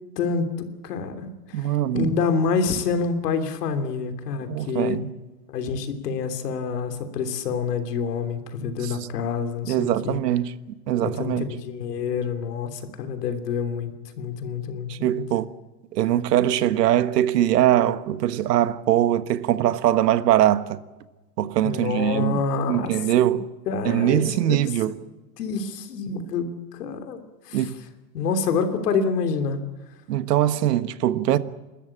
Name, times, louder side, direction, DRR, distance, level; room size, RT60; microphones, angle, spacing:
voice 1, 0.2-5.0 5.5-10.2 11.0-15.2 21.6-22.9 23.7-24.6 25.4-27.2 27.4-27.7 28.1-29.6, left 5 dB, 75° left, 3.2 m, -27 dB
voice 2, 1.5-2.2 4.5-5.1 8.8-9.0 9.6-10.5 10.9-11.5 14.9-15.5 15.9-20.8 21.4-23.5 23.8-24.9 27.5-27.8 30.1-31.4, right 12 dB, 80° right, 1.5 m, -22 dB
30.0 x 13.5 x 8.7 m
supercardioid pair, 175°, 47 cm